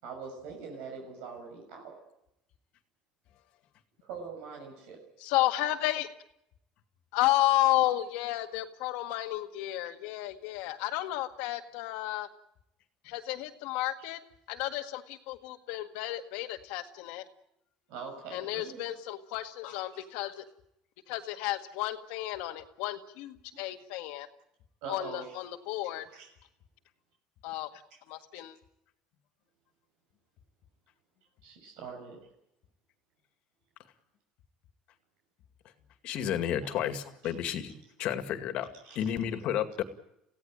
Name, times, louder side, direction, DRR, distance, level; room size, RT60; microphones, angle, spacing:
voice 1, 0.0-2.0 4.0-5.0 17.9-18.9 19.7-19.8 23.5-23.6 24.8-25.3 26.1-26.3 31.4-32.2 36.6-36.7 38.0-38.1 38.8-39.0, right 5 dB, 80° right, 2 dB, 6.4 m, -43 dB
voice 2, 5.2-6.1 7.1-12.3 13.0-14.2 14.5-17.3 18.3-20.4 21.1-24.3 24.9-26.1 27.4-27.7 28.1-28.6, left 16 dB, 85° left, 6 dB, 1.8 m, -32 dB
voice 3, 36.0-37.7 38.0-38.7 39.0-39.8, left 10 dB, 55° left, 8 dB, 2.2 m, -31 dB
24.0 x 16.5 x 8.9 m, 0.81 s
cardioid pair, 150°, 2 cm